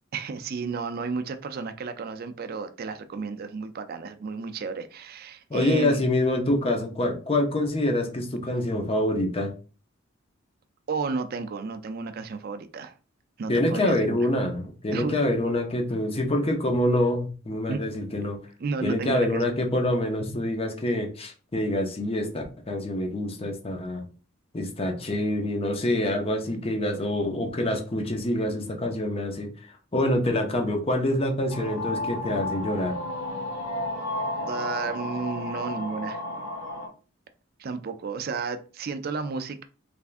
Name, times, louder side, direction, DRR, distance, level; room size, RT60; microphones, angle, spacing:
voice 1, 0.1-6.0 10.9-12.9 13.4-14.3 14.9-15.2 17.7-17.8 18.6-19.5 34.5-36.2 37.6-39.6, right 4 dB, 50° right, 0.4 m, -32 dB
voice 2, 5.5-9.5 13.5-18.4 18.8-24.0 24.5-29.5 29.9-33.0, left 1 dB, 30° left, 0.6 m, -26 dB
sound 1, 31.5-36.9, left 1 dB, 75° left, 1.0 m, -32 dB
3.5 x 3.2 x 2.5 m
head